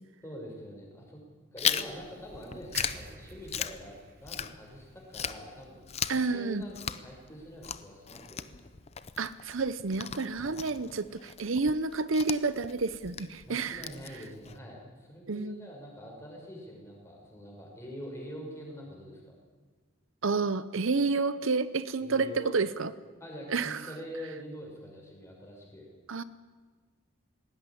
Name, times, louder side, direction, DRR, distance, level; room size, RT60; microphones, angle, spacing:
voice 1, 0.2-1.2 1.5-8.6 10.4-10.6 13.4-19.3 22.0-22.6 23.2-25.9, equal, 15° left, -1 dB, 5.6 m, -45 dB
Chewing mastication, 1.6-4.8 5.1-14.6, left 8 dB, 30° left, 0.7 m, -37 dB
sound 1, 2.7-6.8 7.1-7.3, right 7 dB, 45° right, 1.0 m, -49 dB
voice 2, 6.1-6.6 9.2-13.9 15.3-15.7 20.2-22.9 23.5-23.8 26.1-26.2, right 4 dB, 70° right, 14 dB, 0.7 m, -30 dB
19.0 x 17.0 x 9.9 m, 1.4 s
head